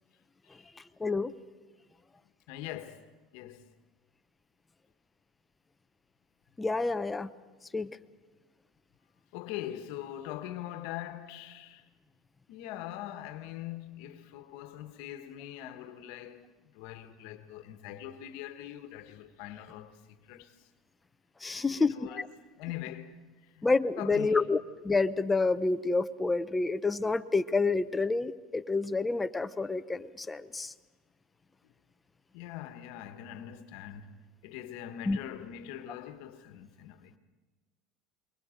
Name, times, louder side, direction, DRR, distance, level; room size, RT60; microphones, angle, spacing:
voice 1, 1.0-1.3 6.6-7.3 7.7-7.9 21.4-22.3 23.6-30.7 35.1-35.2, left 3 dB, 10° left, 0.7 m, -28 dB
voice 2, 2.5-3.1 3.3-3.7 9.3-11.8 12.5-20.7 21.5-22.2 22.5-23.7 24.0-24.4 32.3-34.2 34.4-37.1, left 12 dB, 70° left, 1.3 m, -42 dB
28.0 x 22.0 x 5.1 m
supercardioid pair, 120°, 0 cm